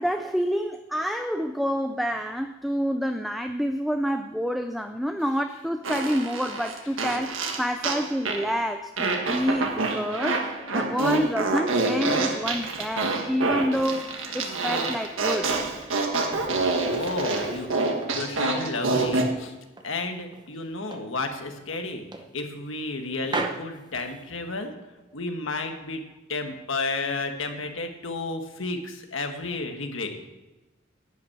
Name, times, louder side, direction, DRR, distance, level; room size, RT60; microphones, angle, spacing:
voice 1, 0.0-15.5, equal, ahead, 7 dB, 0.4 m, -28 dB
Fart, 5.8-8.5 9.0-19.3, right 3 dB, 80° right, 1.5 m, -27 dB
voice 2, 16.8-17.7 18.1-19.5 19.8-24.7 25.1-26.0 26.3-30.3, left 3 dB, 75° left, 5 dB, 1.6 m, -32 dB
sound 1, 17.0-18.2 18.6-20.0 20.3-21.2 21.5-21.7 22.1-22.9 23.2-24.7, right 3 dB, 20° right, 0.9 m, -37 dB
11.5 x 5.9 x 8.8 m, 1.1 s
head